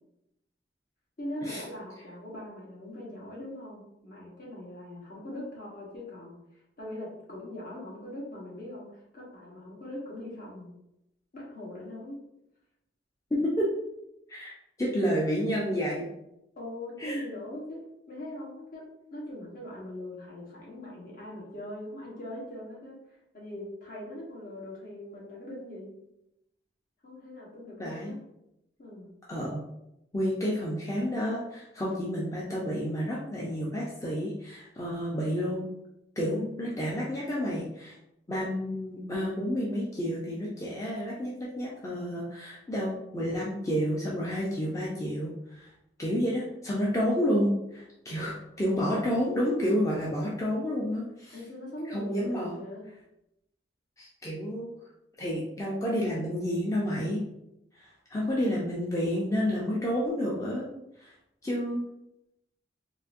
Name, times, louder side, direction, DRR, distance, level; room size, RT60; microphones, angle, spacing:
voice 1, 1.2-6.4 6.8-10.7 11.3-12.2 16.6-23.0 23.3-25.9 27.0-28.2 28.8-29.1 36.2-36.7 51.3-52.9, left 1 dB, 50° left, -4 dB, 1.1 m, -41 dB
voice 2, 13.3-13.7 14.3-14.5 14.8-16.1 17.0-17.2 27.8-28.2 29.3-29.6 30.1-35.7 36.2-38.0 38.3-45.7 46.0-51.4 51.9-52.6 54.0-54.7 55.2-57.2 57.7-60.7 61.0-61.1 61.4-61.9, equal, 20° left, -5 dB, 0.5 m, -30 dB
3.9 x 2.5 x 2.5 m, 0.84 s
head